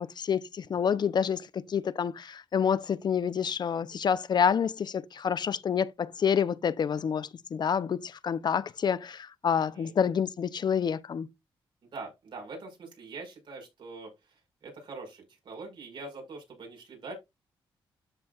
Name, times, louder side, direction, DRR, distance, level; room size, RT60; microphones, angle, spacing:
voice 1, 0.0-11.3, left 7 dB, 50° left, 0.6 m, -28 dB
voice 2, 11.8-17.1, right 3 dB, 60° right, 5.3 m, -43 dB
13.0 x 4.5 x 2.4 m
cardioid pair, 75°, 9 cm